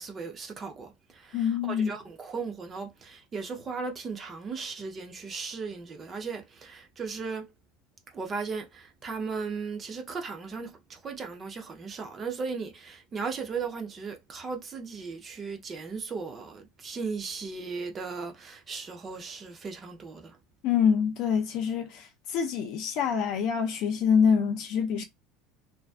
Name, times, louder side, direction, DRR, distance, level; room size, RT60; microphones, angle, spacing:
voice 1, 0.0-7.5 8.1-20.4, right 5 dB, 20° right, 0.5 m, -37 dB
voice 2, 1.3-1.9 20.6-22.1 22.3-25.0, left 7 dB, 45° left, 0.5 m, -25 dB
2.5 x 2.3 x 2.2 m
cardioid pair, 170°, 0 cm